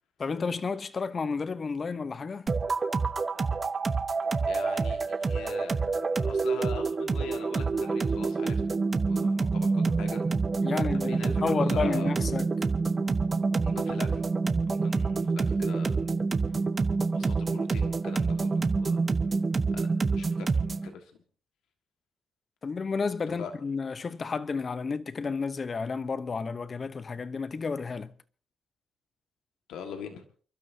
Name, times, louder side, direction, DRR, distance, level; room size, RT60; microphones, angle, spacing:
voice 1, 0.2-2.5 10.6-12.5 22.6-28.1, left 4 dB, 35° left, 0.9 m, -31 dB
sound 1, 2.5-20.9, right 4 dB, 30° right, 1.1 m, -27 dB
voice 2, 4.4-5.8 6.1-8.6 9.0-10.2 10.6-12.2 13.6-14.3 14.7-16.1 17.1-19.0 19.7-21.1 23.3-23.5 29.7-30.2, left 7 dB, 85° left, 1.7 m, -42 dB
29.5 x 12.0 x 2.8 m
cardioid pair, 90°, 0 cm